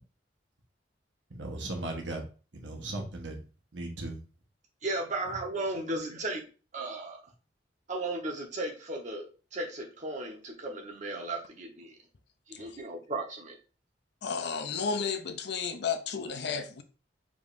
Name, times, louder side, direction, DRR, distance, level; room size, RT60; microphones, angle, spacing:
voice 1, 1.4-2.2 2.5-3.4 3.7-4.2, right 2 dB, 80° right, 1.2 m, -37 dB
voice 2, 4.8-6.4 6.7-7.2 7.9-9.3 9.5-12.0 12.5-13.5, right 2 dB, 40° right, 1.1 m, -35 dB
voice 3, 14.2-16.8, left 5 dB, 65° left, 0.5 m, -33 dB
4.9 x 3.5 x 2.6 m
head